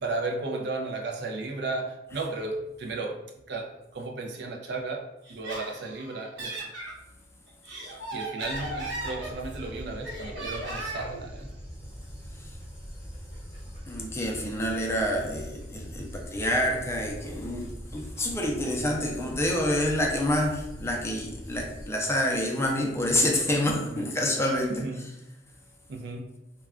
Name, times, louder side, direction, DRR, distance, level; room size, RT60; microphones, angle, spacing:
voice 1, 0.0-3.2 3.5-6.7 8.1-11.5 18.6-18.9 23.9-24.1 24.7-25.1 25.9-26.3, right 3 dB, 65° right, 2 dB, 0.4 m, -34 dB
Laughter, 5.2-6.9 7.5-9.7 10.0-11.2, right 1 dB, 80° right, 0.9 m, -37 dB
Dog, 8.5-21.9, equal, 30° right, 1.0 m, -42 dB
voice 2, 13.9-25.0, left 1 dB, 15° left, 0 dB, 0.4 m, -28 dB
2.3 x 2.1 x 3.5 m, 0.93 s
head